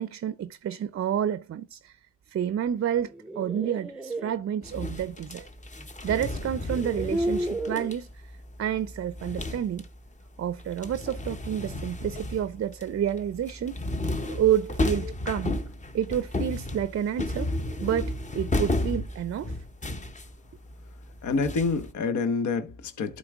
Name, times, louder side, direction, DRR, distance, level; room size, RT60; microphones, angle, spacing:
voice 1, 0.0-2.0 2.3-5.5 6.0-8.2 8.6-9.9 10.4-13.8 14.3-15.6 15.9-17.5 17.8-19.6, right 10 dB, 45° right, 0.5 m, -29 dB
sound 1, 3.0-4.3 5.8-5.9 6.6-7.9, right 1 dB, ahead, 0.6 m, -32 dB
sound 2, 4.6-10.1 10.4-21.9, left 2 dB, 20° left, 0.9 m, -33 dB
voice 2, 21.2-23.2, left 4 dB, 60° left, 1.1 m, -27 dB
11.5 x 3.9 x 3.6 m
cardioid pair, 75°, 33 cm